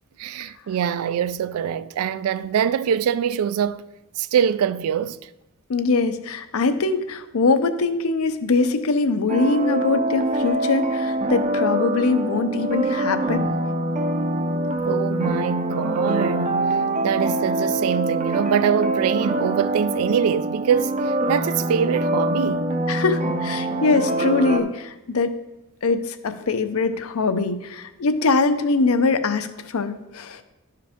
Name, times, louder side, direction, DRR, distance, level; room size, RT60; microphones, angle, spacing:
voice 1, 0.2-3.8 4.2-5.3 14.9-16.6 17.0-22.7, right 8 dB, 85° right, 0.3 m, -24 dB
voice 2, 5.7-13.5 22.9-25.3 25.8-30.4, left 3 dB, 80° left, 0.6 m, -22 dB
sound 1, 9.3-24.6, right 1 dB, 35° right, 0.5 m, -24 dB
11.5 x 4.7 x 3.6 m
head